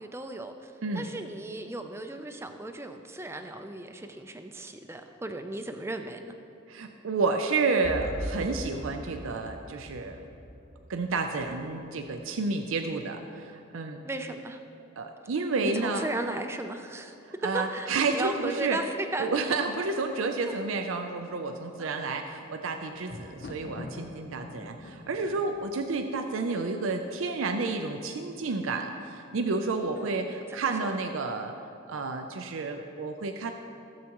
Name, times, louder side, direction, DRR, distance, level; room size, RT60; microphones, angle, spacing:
voice 1, 0.0-6.3 14.0-14.6 15.6-17.2 17.5-19.3 21.8-22.1 30.0-30.3 30.7-30.9, right 2 dB, 10° right, 6 dB, 0.4 m, -36 dB
voice 2, 6.7-10.2 10.9-14.0 15.0-16.1 17.3-18.8 19.2-31.6 31.9-33.5, right 3 dB, 80° right, 5 dB, 0.5 m, -30 dB
sound 1, 7.8-11.7, equal, 30° right, 1.0 m, -40 dB
Thunder, 22.2-27.2 27.9-28.4 28.7-28.8, left 1 dB, 55° left, 0.7 m, -46 dB
16.0 x 7.4 x 3.0 m, 2.8 s
head